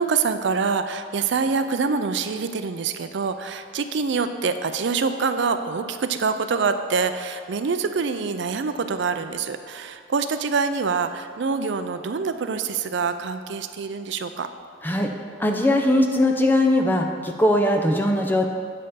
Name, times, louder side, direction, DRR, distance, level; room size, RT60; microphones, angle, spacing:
voice 1, 0.0-14.5, right 5 dB, 65° right, 9 dB, 0.4 m, -25 dB
voice 2, 15.4-18.5, left 1 dB, 10° left, 3 dB, 0.5 m, -20 dB
8.4 x 5.4 x 5.6 m, 2.2 s
head